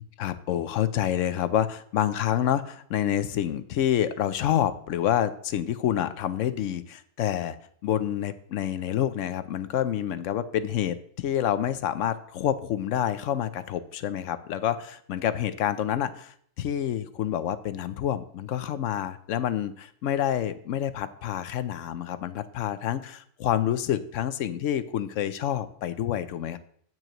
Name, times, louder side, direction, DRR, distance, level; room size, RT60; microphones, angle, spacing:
voice 1, 0.0-7.6 7.8-26.6, left 10 dB, 70° left, 12 dB, 0.9 m, -28 dB
9.0 x 9.0 x 3.0 m, 0.62 s
omnidirectional pair, 1.4 m